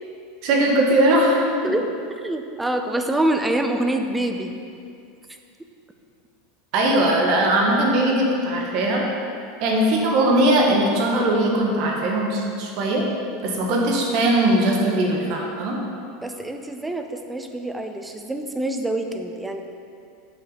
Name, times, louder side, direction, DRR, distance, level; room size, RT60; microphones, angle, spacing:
voice 1, 0.4-1.4 6.7-9.0 9.6-13.0 13.4-15.8, right 1 dB, 55° right, -1 dB, 1.5 m, -20 dB
voice 2, 2.2-4.6 16.2-19.6, right 1 dB, 10° right, 5 dB, 0.7 m, -26 dB
8.4 x 5.8 x 4.1 m, 2.4 s
hypercardioid pair, 85°, 0 cm